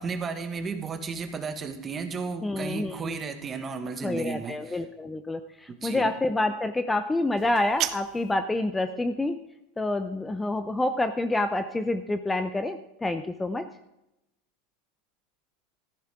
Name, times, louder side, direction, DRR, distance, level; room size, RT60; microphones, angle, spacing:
voice 1, 0.0-4.8 5.8-6.1, right 5 dB, 25° right, 7 dB, 1.6 m, -34 dB
voice 2, 2.4-3.2 4.0-9.4 9.8-13.7, left 2 dB, 10° left, 9 dB, 0.7 m, -28 dB
sound 1, 7.4-8.4, right 13 dB, 50° right, 0.8 m, -33 dB
14.0 x 11.0 x 3.7 m, 0.86 s
supercardioid pair, 120°, 0 cm